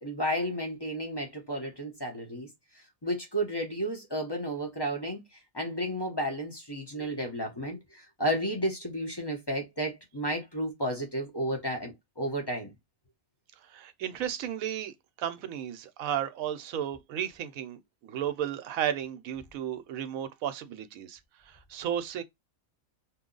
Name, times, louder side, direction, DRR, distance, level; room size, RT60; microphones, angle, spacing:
voice 1, 0.0-2.5 2.7-12.7, equal, 25° left, 0.7 m, -32 dB
voice 2, 13.6-21.2 21.5-22.2, right 10 dB, 80° right, 1.0 m, -34 dB
2.8 x 2.3 x 3.8 m
omnidirectional pair, 1.4 m